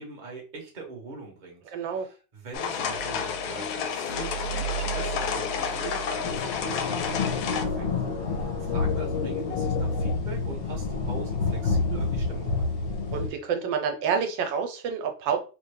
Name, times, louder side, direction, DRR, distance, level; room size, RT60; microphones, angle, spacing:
voice 1, 0.0-7.9 8.3-12.7, right 4 dB, 35° right, 0 dB, 0.8 m, -42 dB
voice 2, 1.7-2.1 13.1-15.4, right 6 dB, 80° right, 5 dB, 1.3 m, -28 dB
sound 1, 2.5-7.7, left 7 dB, 75° left, 1.0 m, -31 dB
sound 2, 2.6-10.2, equal, 90° left, 1.4 m, -36 dB
sound 3, 6.2-13.3, left 3 dB, 45° left, 0.8 m, -28 dB
3.4 x 2.2 x 3.3 m, 0.34 s
omnidirectional pair, 2.0 m